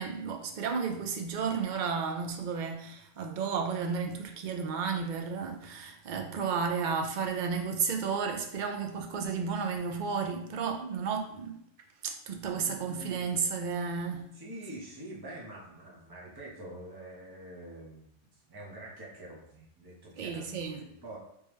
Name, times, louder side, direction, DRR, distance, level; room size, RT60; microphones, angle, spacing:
voice 1, 0.0-11.5 12.0-14.3 20.2-20.8, right 5 dB, 55° right, 0.6 m, -32 dB
voice 2, 12.3-13.3 14.4-18.1 18.4-21.2, right 1 dB, 20° right, 0.9 m, -46 dB
3.5 x 3.2 x 3.1 m
omnidirectional pair, 1.2 m